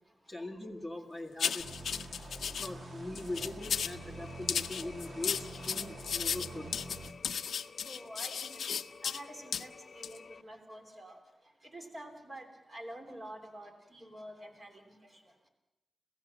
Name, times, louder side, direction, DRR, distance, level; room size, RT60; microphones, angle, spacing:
voice 1, 0.3-1.7 2.6-6.7, left 2 dB, ahead, 4 dB, 1.8 m, -41 dB
sound 1, 1.4-2.7 3.1-4.0 4.5-9.2 9.5-9.6 10.0-10.2, left 7 dB, 85° left, 0.7 m, -35 dB
sound 2, 1.6-7.1, right 2 dB, 45° right, 2.2 m, -46 dB
sound 3, 3.6-10.4, left 5 dB, 45° left, 0.7 m, -53 dB
voice 2, 7.8-11.2 11.6-15.2, right 1 dB, 25° right, 4 dB, 3.1 m, -48 dB
26.5 x 16.5 x 7.4 m, 1.0 s
wide cardioid pair, 165°, 0 cm